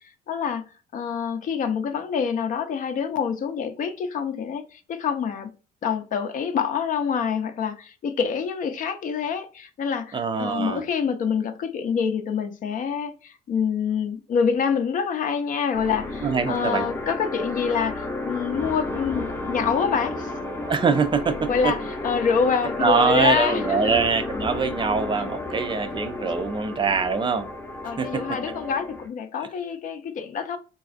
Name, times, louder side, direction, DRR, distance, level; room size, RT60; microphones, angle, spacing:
voice 1, 0.3-0.7 0.9-5.5 5.8-20.3 21.5-24.0 27.8-30.6, left 6 dB, 50° left, 0.6 m, -26 dB
voice 2, 10.1-10.8 16.2-16.9 20.7-21.7 22.8-27.5 27.8-28.2, right 5 dB, 30° right, 0.4 m, -23 dB
sound 1, 15.7-29.1, left 2 dB, 15° left, 0.7 m, -32 dB
4.0 x 2.4 x 2.5 m
cardioid pair, 110°, 17 cm